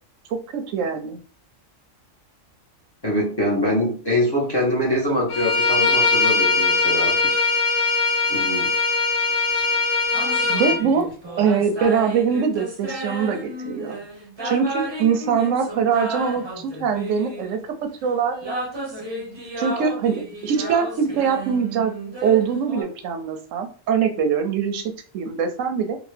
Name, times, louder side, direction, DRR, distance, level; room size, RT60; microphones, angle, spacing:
voice 1, 0.3-1.2 10.5-11.1 11.4-14.0 14.4-17.6 18.0-18.4 19.6-21.9 22.2-26.0, right 6 dB, 90° right, 7 dB, 1.0 m, -23 dB
voice 2, 3.0-7.3 8.3-8.7, left 1 dB, 20° left, -5 dB, 0.9 m, -23 dB
Bowed string instrument, 5.3-10.8, left 3 dB, 90° left, 1.0 m, -20 dB
sound 1, 10.1-17.7 18.3-22.8, right 1 dB, 25° right, 0.7 m, -33 dB
2.9 x 2.4 x 3.2 m, 0.41 s
omnidirectional pair, 1.3 m